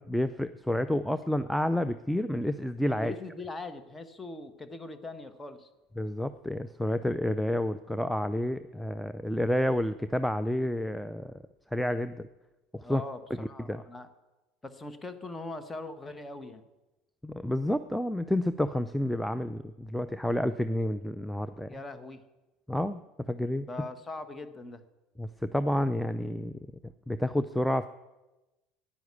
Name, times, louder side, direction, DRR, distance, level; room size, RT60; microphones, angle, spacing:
voice 1, 0.0-3.1 6.0-11.3 11.7-12.3 12.7-13.0 13.4-13.8 17.2-21.7 22.7-23.0 23.3-23.7 25.2-26.6 27.1-27.9, left 1 dB, ahead, 11 dB, 0.5 m, -29 dB
voice 2, 2.9-5.7 12.8-14.1 14.6-16.6 21.7-22.2 23.6-24.8, left 2 dB, 20° left, 9 dB, 1.4 m, -41 dB
10.5 x 10.0 x 8.4 m, 1.1 s
hypercardioid pair, 70°, 0 cm